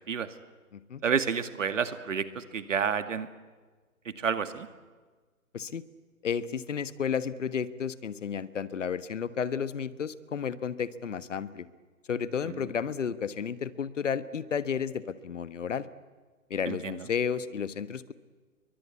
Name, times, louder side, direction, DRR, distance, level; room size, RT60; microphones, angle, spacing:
voice 1, 1.0-3.3 4.1-4.7 12.5-12.6 16.7-16.9, right 6 dB, 60° right, 10 dB, 2.1 m, -30 dB
voice 2, 6.2-11.7 12.1-15.9 16.5-18.1, left 7 dB, 60° left, 14 dB, 1.4 m, -32 dB
29.5 x 23.0 x 8.4 m, 1.4 s
figure-of-eight pair, 135°, 42 cm